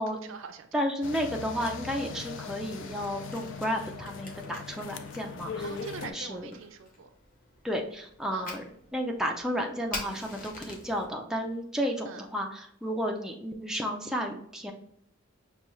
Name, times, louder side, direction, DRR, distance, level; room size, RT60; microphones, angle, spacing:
voice 1, 0.1-0.8 5.6-7.1 8.3-8.5 12.1-12.3, right 5 dB, 70° right, 8 dB, 0.4 m, -44 dB
voice 2, 0.7-5.7 6.0-6.5 7.6-8.6 8.9-14.7, equal, 5° right, 1 dB, 0.4 m, -32 dB
sound 1, 1.0-6.1, left 5 dB, 65° left, 0.4 m, -40 dB
Fire, 2.7-11.0, left 2 dB, 40° left, 0.9 m, -46 dB
5.6 x 2.3 x 3.0 m, 0.70 s
head